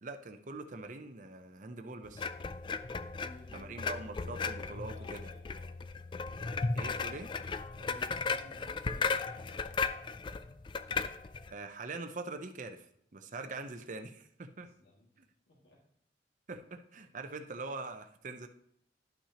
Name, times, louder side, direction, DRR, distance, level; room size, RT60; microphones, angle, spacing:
voice 1, 0.0-2.3 3.5-5.3 6.7-7.3 11.5-14.7 15.2-15.3 16.5-18.5, right 3 dB, 45° right, 7 dB, 0.6 m, -43 dB
sound 1, 2.2-11.5, left 4 dB, 30° left, 0.3 m, -36 dB
voice 2, 3.0-5.5 7.8-9.8 14.6-15.1 15.5-15.8, left 1 dB, 85° left, -4 dB, 2.0 m, -57 dB
11.5 x 5.6 x 2.9 m, 0.68 s
head